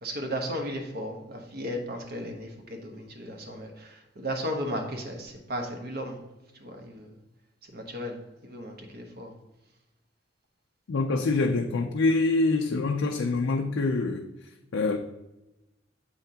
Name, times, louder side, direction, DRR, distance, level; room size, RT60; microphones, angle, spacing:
voice 1, 0.0-6.2 6.6-7.1 7.7-8.2 8.4-9.3, equal, 55° right, 3 dB, 1.1 m, -35 dB
voice 2, 10.9-14.3 14.7-15.0, left 3 dB, 75° left, 3 dB, 0.5 m, -25 dB
7.6 x 5.7 x 2.8 m, 0.99 s
head